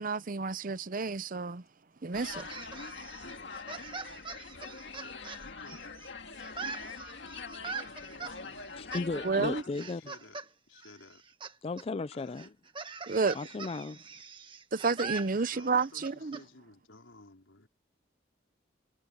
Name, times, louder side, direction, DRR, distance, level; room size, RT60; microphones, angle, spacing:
voice 1, 0.0-1.6 2.0-2.5 9.2-9.6 13.1-13.4 14.7-16.4, right 4 dB, 45° right, 0.7 m, -30 dB
sound 1, 2.1-9.6, left 4 dB, 65° left, 2.3 m, -43 dB
sound 2, 2.3-6.1 6.4-8.3 8.9-9.1 9.7-10.5 10.8-11.5 11.8-11.9 12.4-16.4, right 4 dB, 25° right, 1.6 m, -42 dB
voice 2, 3.2-5.9 6.5-7.5 7.8-9.0 9.5-11.2 12.1-12.5 15.5-17.7, left 2 dB, 85° left, 4.5 m, -55 dB
voice 3, 8.8-10.0 11.6-12.5 13.3-14.0, left 3 dB, 30° left, 0.4 m, -35 dB
head